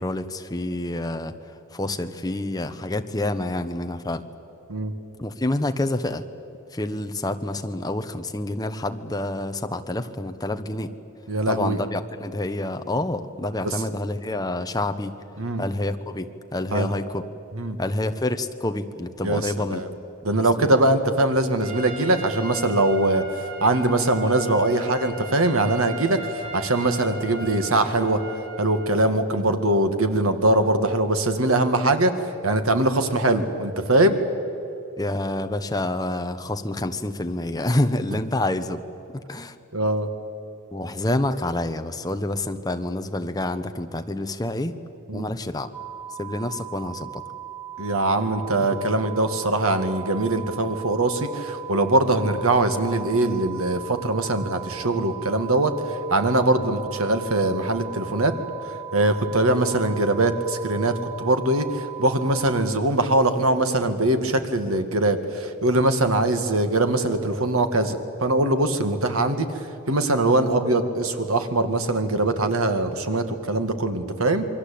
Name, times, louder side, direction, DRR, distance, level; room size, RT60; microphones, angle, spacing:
voice 1, 0.0-4.2 5.2-6.2 6.7-10.9 11.5-15.1 15.6-17.2 17.8-19.8 20.6-20.7 35.0-38.8 39.3-39.6 40.7-44.7 45.1-45.7 46.2-47.2 48.6-48.8 50.4-50.5 56.6-56.7, left 1 dB, 20° left, 7 dB, 1.1 m, -28 dB
voice 2, 11.3-11.8 15.4-15.6 16.7-16.9 17.6-17.8 19.2-19.4 19.7-19.9 20.2-23.2 23.6-28.2 28.6-32.1 32.4-34.2 39.7-40.1 45.1-45.2 47.8-55.7 56.1-58.4 58.9-69.5 69.9-74.5, right 2 dB, 85° right, 8 dB, 2.1 m, -22 dB
Trumpet, 21.6-28.9, equal, 65° right, 4.4 m, -37 dB
sound 1, 45.7-62.6, right 11 dB, 5° right, 1.2 m, -38 dB
28.0 x 22.5 x 8.6 m, 2.9 s
head